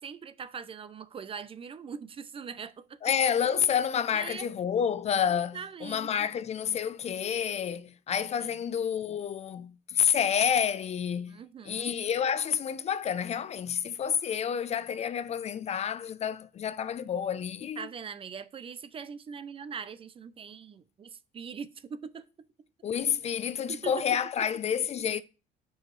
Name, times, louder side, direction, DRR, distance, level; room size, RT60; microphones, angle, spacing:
voice 1, 0.0-3.0 4.1-4.4 5.3-6.1 8.4-8.5 11.3-11.9 17.8-22.3 23.7-23.9, right 6 dB, 35° right, 0.5 m, -41 dB
voice 2, 3.0-11.4 11.6-17.9 22.8-25.2, left 8 dB, 40° left, 0.4 m, -29 dB
7.5 x 4.7 x 3.1 m
cardioid pair, 110°, 17 cm